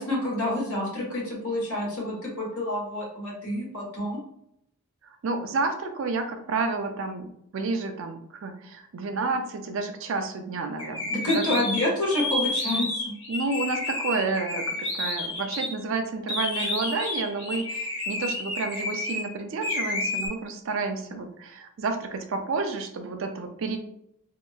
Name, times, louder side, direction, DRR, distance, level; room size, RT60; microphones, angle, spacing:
voice 1, 0.0-4.2 11.1-12.9, left 1 dB, 75° left, -4 dB, 1.3 m, -28 dB
voice 2, 5.0-11.6 13.3-23.8, right 3 dB, 60° right, 6 dB, 0.4 m, -30 dB
sound 1, 10.8-15.7 16.3-19.3 19.6-20.3, left 2 dB, 30° left, 1.0 m, -30 dB
2.8 x 2.2 x 2.4 m, 0.74 s
head